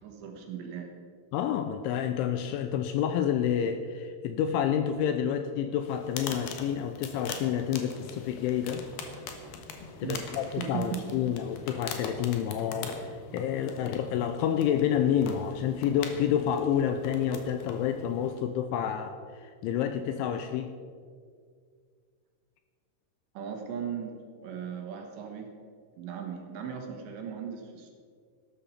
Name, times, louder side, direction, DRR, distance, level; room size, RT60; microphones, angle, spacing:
voice 1, 0.0-0.9 10.0-11.3 23.3-24.2 24.4-25.5 26.0-27.9, right 7 dB, 70° right, 2 dB, 3.3 m, -37 dB
voice 2, 1.3-8.9 10.0-20.7, left 9 dB, 85° left, 8 dB, 2.8 m, -29 dB
sound 1, 5.8-18.5, left 5 dB, 70° left, 2.4 m, -42 dB
14.0 x 12.5 x 5.7 m, 2.1 s
omnidirectional pair, 6.0 m